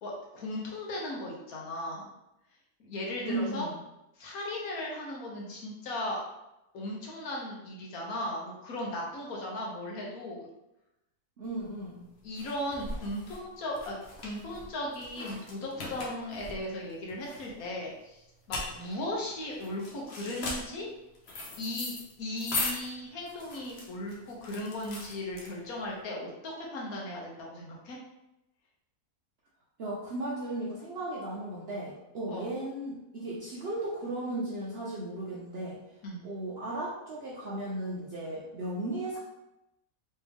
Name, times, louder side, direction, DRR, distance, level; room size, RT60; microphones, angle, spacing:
voice 1, 0.0-2.1 2.8-3.7 4.2-6.2 6.7-10.5 12.2-18.2 18.5-20.9 21.6-28.0 32.3-32.5 36.0-36.3, left 1 dB, 70° left, -2 dB, 1.3 m, -37 dB
voice 2, 3.3-3.8 11.4-12.0 29.8-35.8 36.2-39.2, right 1 dB, 55° right, -5 dB, 0.7 m, -36 dB
sound 1, 11.5-25.9, left 2 dB, 50° left, 0.9 m, -39 dB
3.3 x 3.2 x 3.4 m, 0.91 s
omnidirectional pair, 1.7 m